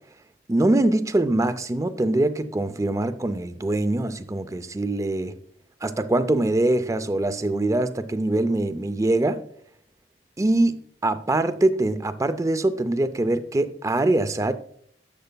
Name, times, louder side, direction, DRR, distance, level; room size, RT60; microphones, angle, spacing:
voice 1, 0.5-5.4 5.8-9.4 10.4-10.8 11.0-14.5, right 2 dB, 20° right, 0.4 m, -23 dB
12.0 x 7.8 x 2.2 m
head